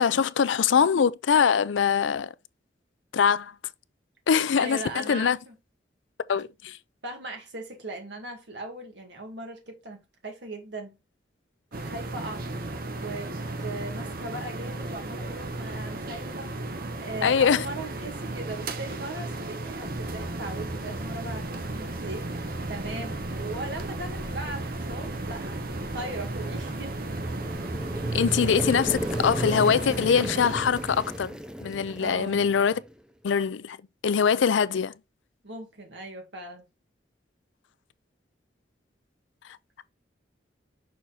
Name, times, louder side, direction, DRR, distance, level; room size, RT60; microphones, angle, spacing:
voice 1, 0.0-2.3 3.1-3.5 4.3-5.4 6.3-6.8 17.2-17.7 28.1-31.3 31.6-32.8 33.2-33.8 34.0-34.9, left 7 dB, 80° left, 0.4 m, -23 dB
voice 2, 4.5-5.6 7.0-11.0 11.9-12.5 12.9-16.5 17.0-22.3 22.7-27.0 32.0-32.5 35.4-36.7, right 2 dB, 70° right, 2.0 m, -38 dB
sound 1, 11.7-31.2, right 2 dB, 50° right, 0.8 m, -35 dB
sound 2, 19.8-29.4, right 1 dB, 30° right, 1.1 m, -39 dB
sound 3, 27.0-32.9, equal, 5° right, 0.4 m, -35 dB
6.3 x 4.0 x 4.2 m
head